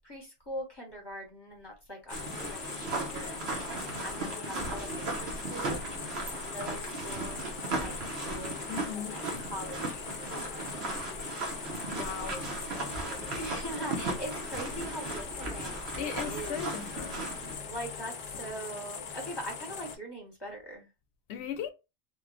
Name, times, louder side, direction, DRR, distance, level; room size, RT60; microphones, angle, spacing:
voice 1, 0.0-5.8 6.4-7.4 7.7-10.7 13.3-16.7 17.6-20.9, equal, 25° left, 1.0 m, -42 dB
sound 1, 2.1-20.0, left 6 dB, 55° left, 0.6 m, -41 dB
sound 2, 2.1-17.6, right 2 dB, 80° right, 1.1 m, -37 dB
voice 2, 8.7-9.2 11.8-12.4 16.0-17.3 21.3-21.7, left 8 dB, 90° left, 0.8 m, -38 dB
3.1 x 2.3 x 2.3 m
omnidirectional pair, 1.1 m